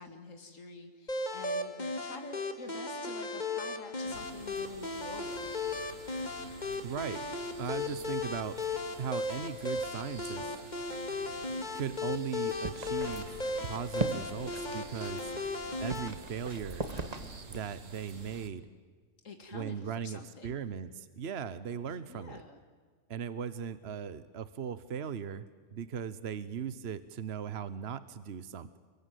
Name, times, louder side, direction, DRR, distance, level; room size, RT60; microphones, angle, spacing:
voice 1, 0.0-5.5 19.2-20.6 22.1-22.6, left 3 dB, 85° left, 5 dB, 2.6 m, -48 dB
sound 1, 1.1-16.1, left 3 dB, 35° left, 2.2 m, -36 dB
sound 2, 4.0-18.5, right 4 dB, 85° right, 2.2 m, -50 dB
voice 2, 6.8-7.2 7.6-8.6 9.0-10.5 11.7-15.3 15.8-16.8 17.5-18.7 19.5-22.4 23.1-25.4 25.7-28.8, right 7 dB, 55° right, 14 dB, 1.2 m, -38 dB
sound 3, 12.5-17.6, right 2 dB, 30° right, 1.9 m, -40 dB
30.0 x 21.5 x 9.3 m, 1.5 s
omnidirectional pair, 1.3 m